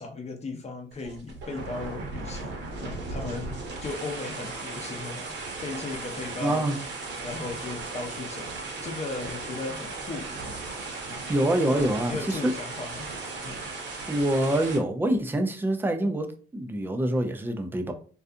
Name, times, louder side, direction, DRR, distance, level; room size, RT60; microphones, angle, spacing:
voice 1, 0.0-5.3 5.6-6.9 7.2-8.5 8.8-10.3 11.0-11.4 11.7-13.1 13.4-13.5, left 3 dB, 35° left, 4 dB, 0.7 m, -37 dB
sound 1, 0.9-14.8, right 3 dB, 65° right, 0.9 m, -36 dB
voice 2, 6.4-6.8 11.3-12.5 14.1-17.9, right 1 dB, 10° right, 5 dB, 0.4 m, -26 dB
2.4 x 2.3 x 2.6 m, 0.41 s
cardioid pair, 90°, 20 cm